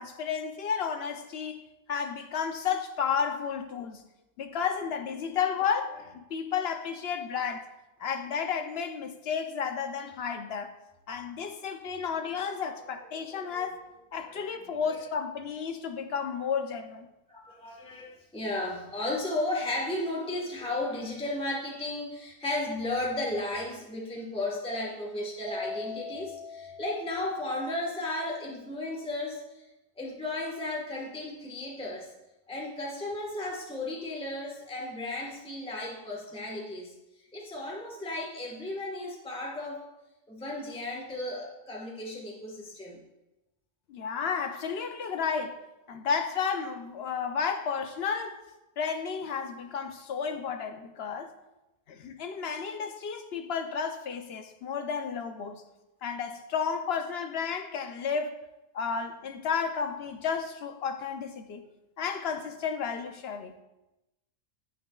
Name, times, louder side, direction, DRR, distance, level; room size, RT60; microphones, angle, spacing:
voice 1, 0.0-1.6 1.9-4.0 4.4-7.7 8.0-10.8 11.1-13.8 14.1-17.1 43.9-45.6 45.9-48.4 48.8-51.3 51.9-55.6 56.0-58.4 58.7-61.6 62.0-63.5, left 6 dB, 60° left, 0.7 m, -32 dB
voice 2, 13.3-13.7 14.1-15.0 17.3-29.7 30.0-32.1 32.5-36.9 37.3-39.8 40.3-43.0, left 2 dB, 5° left, 1.2 m, -34 dB
Mallet percussion, 25.5-27.9, left 4 dB, 60° right, 0.9 m, -41 dB
9.8 x 9.3 x 2.3 m
omnidirectional pair, 1.4 m